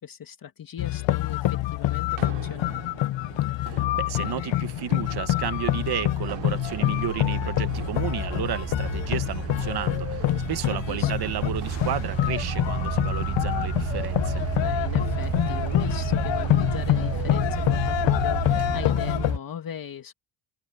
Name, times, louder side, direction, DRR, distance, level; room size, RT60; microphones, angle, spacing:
voice 1, 0.0-3.1 10.7-11.3 14.6-20.1, left 8 dB, 45° left, 2.3 m, -39 dB
sound 1, 0.8-19.4, left 15 dB, 70° left, 0.8 m, -26 dB
sound 2, 1.9-19.4, right 13 dB, 90° right, 5.7 m, -46 dB
sound 3, 3.6-3.7 4.3-19.4, right 12 dB, 35° right, 0.4 m, -32 dB
voice 2, 3.6-14.4, right 10 dB, 55° right, 1.4 m, -32 dB
open air
cardioid pair, 145°, 47 cm